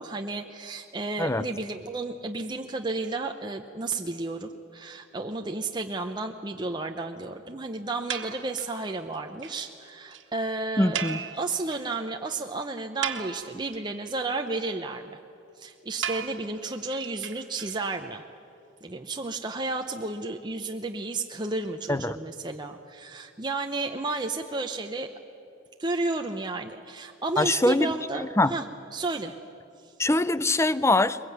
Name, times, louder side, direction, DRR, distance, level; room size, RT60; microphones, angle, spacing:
voice 1, 0.0-11.0 11.3-15.2 15.6-18.2 18.8-25.1 25.8-28.6 28.9-29.4, right 3 dB, 25° right, 4 dB, 0.8 m, -32 dB
sound 1, 8.1-8.8 9.1-9.2 9.4-9.6 9.8-9.9 10.1-10.2 10.9-12.0 12.3-12.4 12.8-13.8 16.0-18.0, right 8 dB, 75° right, 1.6 m, -35 dB
voice 2, 10.8-11.2 21.9-22.2 27.4-28.5 30.0-31.2, left 2 dB, 15° left, 15 dB, 0.6 m, -23 dB
22.0 x 22.0 x 9.3 m, 2.7 s
head